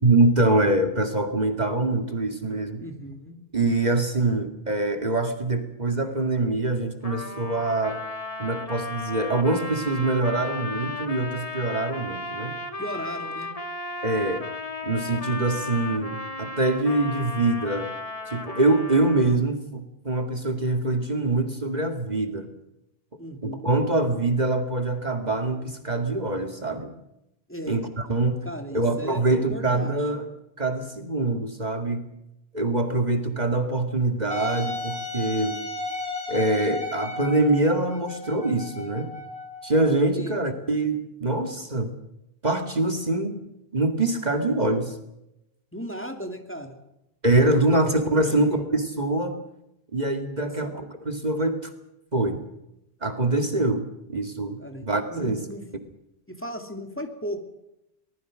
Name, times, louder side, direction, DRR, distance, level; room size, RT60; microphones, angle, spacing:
voice 1, 0.0-2.8 3.5-8.0 8.4-12.6 14.0-14.4 14.8-17.9 18.3-22.5 23.4-26.9 27.7-28.4 28.7-30.3 30.6-32.1 32.5-35.6 36.3-39.1 39.6-41.9 42.4-43.4 43.7-45.0 47.2-49.4 49.9-51.7 52.1-52.4 53.0-55.4, right 2 dB, 40° right, 6 dB, 2.3 m, -24 dB
voice 2, 2.8-3.4 12.8-13.5 23.2-23.7 27.5-27.8 28.4-29.9 40.1-40.4 45.7-46.8 48.1-48.6 50.4-50.8 54.6-55.6 56.3-57.4, equal, 10° left, 4 dB, 2.9 m, -36 dB
Trumpet, 7.0-19.5, left 2 dB, 35° left, 2.0 m, -35 dB
Wind instrument woodwind instrument, 34.3-39.9, left 3 dB, 75° left, 6.4 m, -34 dB
24.5 x 20.0 x 6.4 m, 0.86 s
omnidirectional pair, 1.1 m